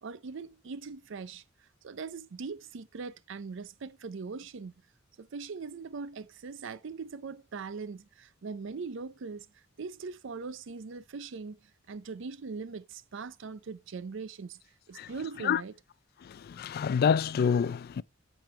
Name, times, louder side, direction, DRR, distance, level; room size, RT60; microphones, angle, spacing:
voice 1, 0.0-1.4 1.8-4.7 5.2-11.6 11.9-14.6 14.9-15.8, right 4 dB, 65° right, 0.5 m, -41 dB
voice 2, 16.5-18.0, left 7 dB, 50° left, 0.3 m, -27 dB
8.9 x 5.2 x 3.2 m
head